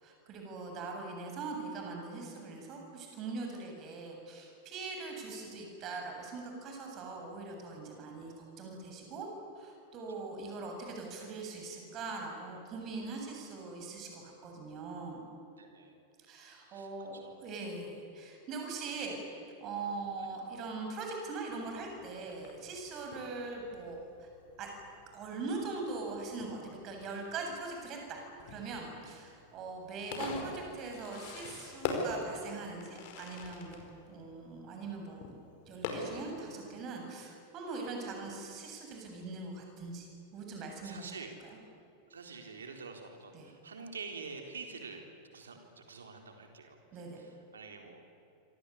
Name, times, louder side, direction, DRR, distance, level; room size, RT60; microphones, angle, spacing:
voice 1, 0.0-9.3 9.6-15.2 16.3-19.2 19.6-24.3 24.6-24.7 25.1-33.8 34.1-35.3 35.7-41.1 43.3-43.5 46.9-47.2, right 3 dB, 35° right, 2 dB, 7.7 m, -41 dB
voice 2, 7.8-8.7 10.2-10.3 15.6-16.0 16.6-17.5 20.2-20.3 29.0-29.1 40.8-41.4 42.1-45.0 45.3-46.8 47.1-48.0, right 4 dB, 70° right, 4 dB, 4.0 m, -47 dB
Fireworks, 21.5-36.5, left 4 dB, 50° left, 5.0 m, -44 dB
27.0 x 26.0 x 8.5 m, 2.7 s
figure-of-eight pair, 90°, 0 cm